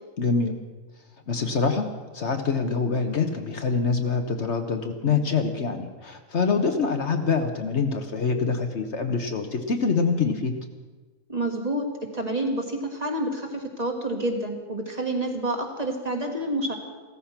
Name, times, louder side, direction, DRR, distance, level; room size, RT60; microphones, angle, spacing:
voice 1, 0.2-0.6 1.3-10.5, left 5 dB, 55° left, 6 dB, 1.3 m, -25 dB
voice 2, 11.3-11.9 12.1-16.7, right 1 dB, 30° right, 2 dB, 2.0 m, -28 dB
16.0 x 14.0 x 5.9 m, 1.3 s
omnidirectional pair, 1.4 m